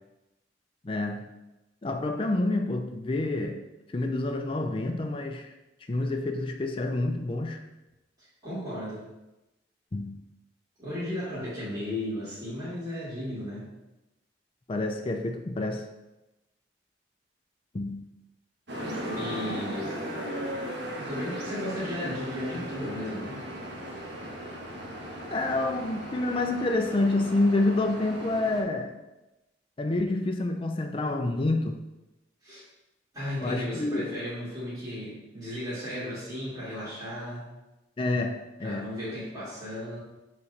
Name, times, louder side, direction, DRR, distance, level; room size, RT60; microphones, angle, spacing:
voice 1, 0.8-1.2 1.8-3.6 3.9-5.5 5.9-7.6 9.9-10.2 14.7-15.9 17.7-18.0 25.3-28.9 29.8-31.8 33.4-34.1 38.0-38.9, left 2 dB, 30° left, 4 dB, 0.4 m, -28 dB
voice 2, 8.2-9.0 10.8-13.7 19.1-19.9 21.0-23.4 32.4-32.6 33.1-37.5 38.6-40.0, left 1 dB, 25° right, -13 dB, 2.2 m, -35 dB
sound 1, 18.7-28.6, equal, 80° right, 1.3 m, -37 dB
7.1 x 4.1 x 3.3 m, 0.99 s
head